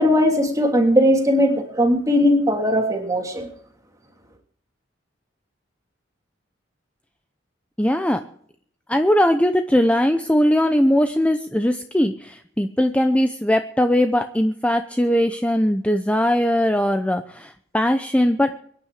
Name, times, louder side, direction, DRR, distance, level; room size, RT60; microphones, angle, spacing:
voice 1, 0.0-3.5, equal, 20° right, 3 dB, 3.0 m, -18 dB
voice 2, 7.8-8.2 8.9-18.5, equal, 5° left, 7 dB, 0.7 m, -20 dB
23.5 x 10.0 x 4.9 m, 0.63 s
head